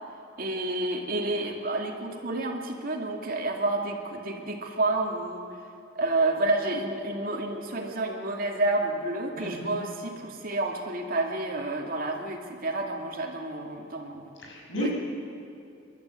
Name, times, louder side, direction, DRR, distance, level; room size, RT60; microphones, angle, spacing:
voice 1, 0.4-5.5 6.0-14.3 14.8-14.9, right 2 dB, 45° right, 2 dB, 2.4 m, -29 dB
voice 2, 9.4-9.8 14.4-14.9, equal, 65° left, -2 dB, 5.9 m, -33 dB
29.0 x 12.0 x 8.3 m, 2.6 s
head